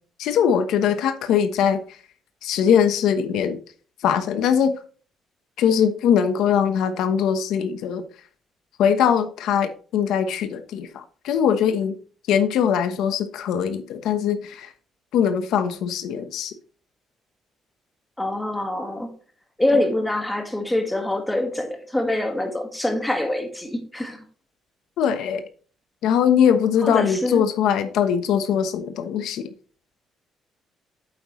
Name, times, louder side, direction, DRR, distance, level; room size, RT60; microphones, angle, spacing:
voice 1, 0.2-2.0 2.4-3.6 4.0-4.7 5.6-8.0 8.8-12.0 12.3-14.7 15.1-16.5 25.0-25.4 26.0-29.5, left 8 dB, 80° left, 1.1 m, -21 dB
voice 2, 18.2-19.1 19.6-24.2 26.8-27.4, left 1 dB, 5° left, 1.7 m, -25 dB
8.8 x 7.9 x 3.1 m
cardioid pair, 155°, 0 cm